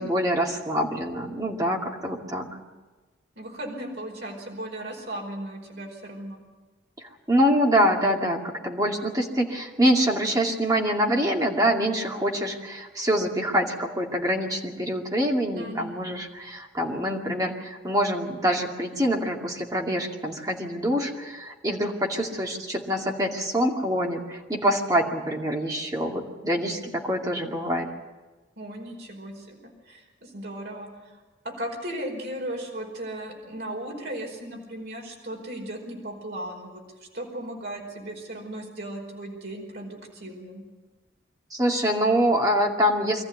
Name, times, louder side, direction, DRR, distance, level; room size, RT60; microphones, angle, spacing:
voice 1, 0.0-2.5 7.0-27.9 41.5-43.2, equal, 20° right, 0 dB, 2.4 m, -25 dB
voice 2, 3.3-6.4 15.6-16.0 28.6-30.9 31.4-36.8 37.1-40.6, right 1 dB, 65° right, 0 dB, 5.0 m, -36 dB
23.5 x 14.5 x 9.5 m, 1.2 s
head